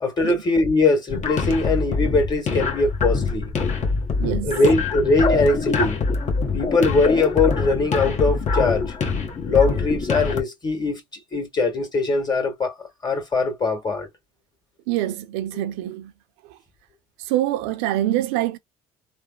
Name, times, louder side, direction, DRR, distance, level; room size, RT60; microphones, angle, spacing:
voice 1, 0.0-3.5 4.4-6.0 6.5-8.9 9.4-11.0 11.3-12.7 13.0-14.1, left 3 dB, 25° left, 1.8 m, -21 dB
sound 1, 1.1-10.4, left 4 dB, 45° left, 1.1 m, -24 dB
voice 2, 4.2-4.6 14.9-16.1 16.5-16.6 17.2-18.6, right 14 dB, 90° right, 0.5 m, -25 dB
3.3 x 2.0 x 2.4 m
supercardioid pair, 85°, 17 cm